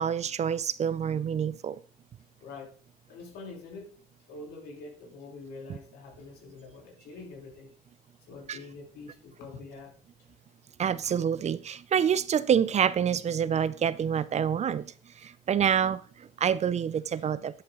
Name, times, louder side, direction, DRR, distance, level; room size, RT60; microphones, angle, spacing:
voice 1, 0.0-1.8 8.5-8.6 10.8-14.9 15.2-17.6, right 8 dB, 45° right, 0.6 m, -27 dB
voice 2, 2.4-2.7 3.1-3.9 4.3-7.7 8.3-9.9 11.0-11.1 17.1-17.3, left 3 dB, 85° left, 3.4 m, -45 dB
11.0 x 7.1 x 3.8 m
cardioid pair, 100°, 16 cm